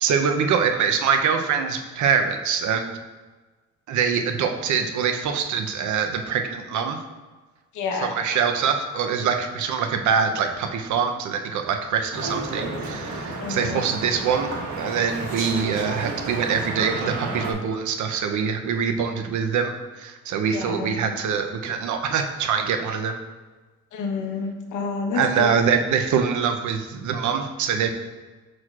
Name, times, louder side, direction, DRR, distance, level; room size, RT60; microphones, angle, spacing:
voice 1, 0.0-2.9 3.9-7.0 7.9-23.2 25.1-27.9, right 6 dB, 75° right, 6 dB, 0.7 m, -24 dB
voice 2, 7.7-8.1 13.4-13.8 20.5-21.1 23.9-25.5, left 4 dB, 80° left, 3 dB, 1.0 m, -29 dB
sound 1, 12.1-17.5, right 2 dB, 60° right, 1.4 m, -31 dB
6.3 x 6.1 x 2.4 m, 1.3 s
cardioid pair, 90°, 30 cm